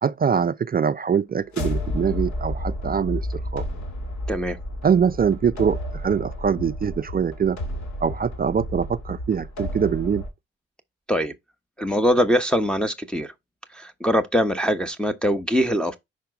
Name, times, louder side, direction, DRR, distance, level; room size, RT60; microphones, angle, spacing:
voice 1, 0.0-3.2 3.5-3.6 4.8-7.6 8.0-10.2, right 7 dB, 30° right, 0.5 m, -23 dB
sound 1, 1.4-10.3, left 1 dB, 60° left, 2.2 m, -31 dB
voice 2, 11.8-13.3 13.7-16.0, equal, 5° left, 1.1 m, -22 dB
5.7 x 4.9 x 3.4 m
hypercardioid pair, 45°, 31 cm